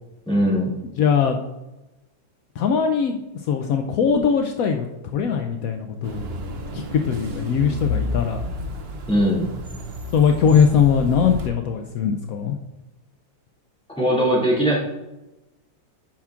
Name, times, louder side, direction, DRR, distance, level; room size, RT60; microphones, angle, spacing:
voice 1, 0.3-0.7 9.1-9.5 13.9-14.8, equal, 5° left, -6 dB, 2.1 m, -20 dB
voice 2, 1.0-1.4 2.6-4.9 5.1-6.2 6.7-8.5 10.1-12.6, left 7 dB, 80° left, 5 dB, 0.8 m, -20 dB
sound 1, 6.0-11.5, left 2 dB, 75° right, 0.5 m, -31 dB
10.5 x 5.7 x 2.4 m, 0.99 s
omnidirectional pair, 2.0 m